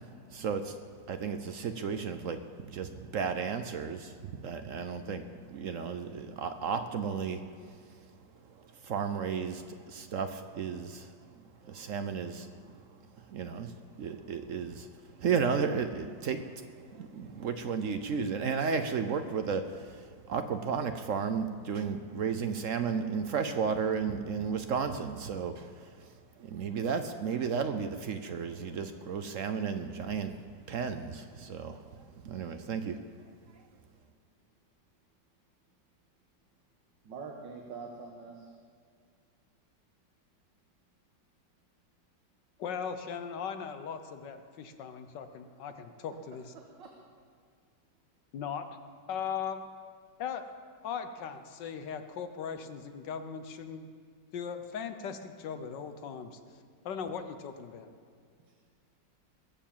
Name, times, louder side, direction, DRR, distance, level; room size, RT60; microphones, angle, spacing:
voice 1, 0.3-0.7 1.1-2.4 2.7-4.1 4.4-7.4 8.8-12.5 13.3-14.9 15.2-16.6 16.9-25.9 26.4-30.3 30.7-31.8 32.2-33.0, right 6 dB, 60° right, 8 dB, 0.9 m, -33 dB
voice 2, 37.0-38.5 45.8-45.9 46.5-46.9, right 4 dB, 80° right, 1 dB, 1.9 m, -44 dB
voice 3, 42.6-46.5 48.3-48.7 49.1-49.7 50.2-50.4 50.8-53.9 54.3-56.4 56.8-57.9, left 7 dB, 75° left, 8 dB, 1.5 m, -38 dB
21.0 x 7.1 x 7.3 m, 2.1 s
omnidirectional pair, 1.9 m